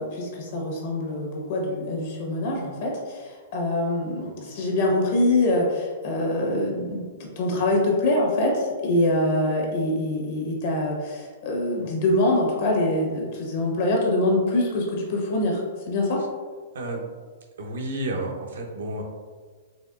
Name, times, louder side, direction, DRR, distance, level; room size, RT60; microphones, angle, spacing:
voice 1, 0.0-16.2, left 1 dB, 55° left, -1 dB, 1.1 m, -24 dB
voice 2, 16.7-17.1 17.6-19.0, right 1 dB, 80° right, 1 dB, 0.7 m, -31 dB
4.2 x 3.0 x 2.4 m, 1.5 s
hypercardioid pair, 140°, 0 cm